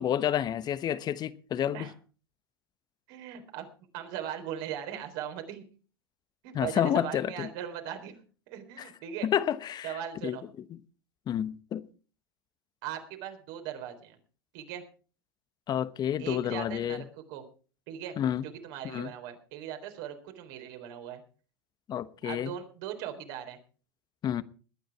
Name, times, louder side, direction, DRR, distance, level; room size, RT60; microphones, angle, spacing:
voice 1, 0.0-1.9 6.5-7.5 8.8-8.9 9.2-10.0 10.2-10.4 10.7-10.8 11.3-11.8 15.7-17.0 18.2-18.5 18.8-19.1 21.9-22.5 24.2-24.4, left 10 dB, 35° left, 1.0 m, -29 dB
voice 2, 3.1-3.7 3.9-5.7 6.4-8.2 8.5-9.3 9.8-10.4 12.8-14.2 14.5-14.8 16.2-17.4 17.9-18.2 18.4-21.2 22.2-23.6, right 10 dB, 60° right, 3.8 m, -39 dB
21.0 x 9.4 x 4.7 m
hypercardioid pair, 95°, 12 cm